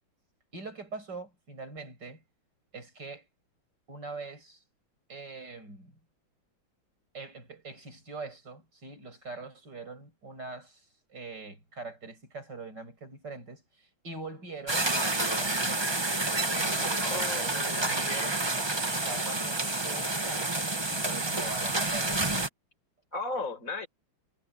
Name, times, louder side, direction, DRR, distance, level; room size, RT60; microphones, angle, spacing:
voice 1, 0.5-2.2 2.7-3.3 3.9-4.6 5.1-5.9 7.1-10.8 11.1-15.0 15.3-16.0 16.5-20.6 20.9-22.1, right 3 dB, 60° right, 8.1 m, -43 dB
sound 1, 14.7-22.5, right 2 dB, 15° right, 1.2 m, -29 dB
voice 2, 17.0-17.9 23.1-23.9, left 3 dB, 40° left, 5.5 m, -36 dB
omnidirectional pair, 2.1 m